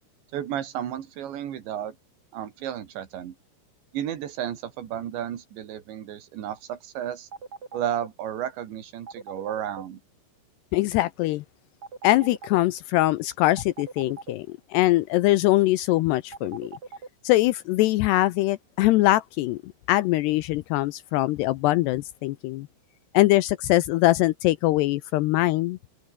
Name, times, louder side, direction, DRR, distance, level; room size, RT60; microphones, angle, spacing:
voice 1, 0.3-2.0 2.3-3.4 3.9-7.3 7.7-10.0, right 10 dB, 75° right, 4.5 m, -33 dB
sound 1, 7.3-8.1 9.1-9.8 11.8-12.6 13.6-14.3 16.3-17.1, right 4 dB, 30° right, 4.8 m, -39 dB
voice 2, 10.7-11.4 12.0-16.8 17.2-22.7 23.1-25.8, left 17 dB, 80° left, 2.5 m, -22 dB
open air
omnidirectional pair, 5.3 m